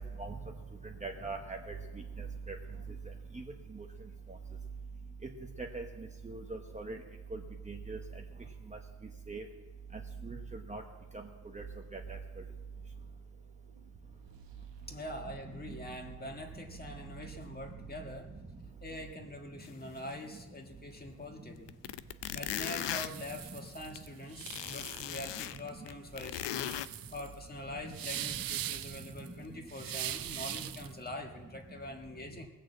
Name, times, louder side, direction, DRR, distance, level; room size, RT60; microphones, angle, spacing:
voice 1, 1.0-1.7 2.5-2.6 3.3-3.4 5.6-5.8 6.2-7.0 7.3-7.4 7.7-8.0 9.3-9.4 10.2-10.4 10.7-10.8 11.5-11.6 11.9-12.2, right 3 dB, 15° right, 2 dB, 1.0 m, -40 dB
sound 1, 12.2-20.2, right 8 dB, 80° right, 1.3 m, -53 dB
voice 2, 14.9-18.3 18.8-21.7 22.3-26.7 27.1-32.5, left 1 dB, 20° left, 3 dB, 1.5 m, -44 dB
sound 2, 19.6-19.7 20.1-20.2 21.2-21.3 21.7-24.0 24.4-26.9, left 12 dB, 80° left, 0.6 m, -38 dB
sound 3, 22.3-31.0, right 12 dB, 55° right, 0.5 m, -42 dB
19.0 x 6.5 x 7.8 m, 1.2 s
wide cardioid pair, 130°, 43 cm